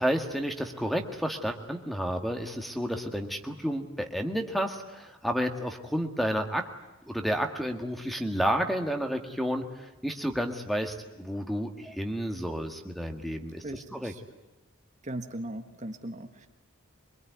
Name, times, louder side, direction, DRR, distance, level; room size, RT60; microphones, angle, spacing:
voice 1, 0.0-6.7 7.1-14.1, equal, ahead, 5 dB, 1.8 m, -31 dB
voice 2, 13.6-14.2 15.0-16.5, right 1 dB, 35° right, 6 dB, 1.4 m, -38 dB
24.5 x 23.0 x 9.5 m, 1.1 s
head